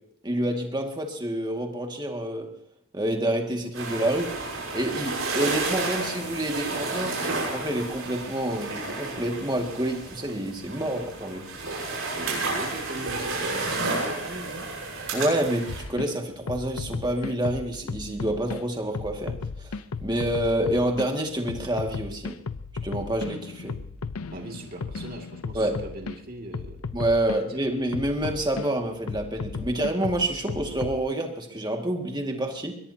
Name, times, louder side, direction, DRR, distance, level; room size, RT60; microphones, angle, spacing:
voice 1, 0.2-2.5 2.9-4.3 4.7-11.5 15.1-19.7 20.0-22.4 22.8-23.8 25.5-25.8 26.9-32.8, right 1 dB, 20° right, 3 dB, 2.0 m, -28 dB
sound 1, 3.7-15.8, right 3 dB, 65° right, 7.8 m, -31 dB
voice 2, 12.1-14.6 24.3-26.8 27.3-27.6, right 1 dB, 40° right, 1 dB, 2.4 m, -39 dB
sound 2, 15.7-16.1 16.5-18.6 18.9-21.1 21.5-26.2 26.5-27.4 27.9-28.7 29.1-31.0, left 4 dB, 85° left, 0.6 m, -35 dB
22.5 x 21.5 x 2.8 m, 0.72 s
head